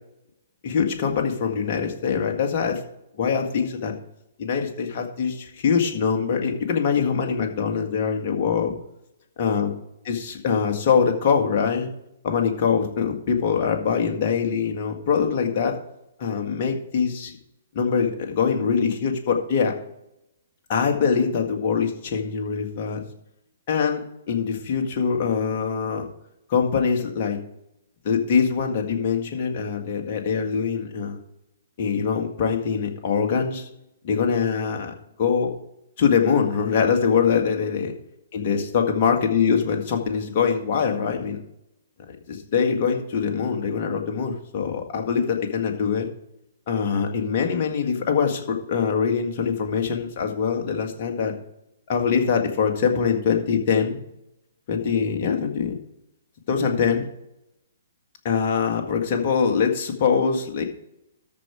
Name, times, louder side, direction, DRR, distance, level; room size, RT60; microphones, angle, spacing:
voice 1, 0.6-2.8 3.2-3.9 4.4-8.7 9.4-9.7 10.1-11.9 12.2-15.8 16.2-17.3 17.7-19.7 20.7-23.0 23.7-24.0 24.3-26.1 26.5-27.4 28.0-31.2 31.8-33.7 34.0-35.5 36.0-37.9 38.3-41.4 42.3-46.1 46.7-51.3 51.9-54.0 54.7-55.7 56.5-57.1 58.2-60.6, left 6 dB, 45° left, 3 dB, 1.9 m, -23 dB
13.5 x 5.0 x 4.6 m, 0.80 s
figure-of-eight pair, 125°, 0 cm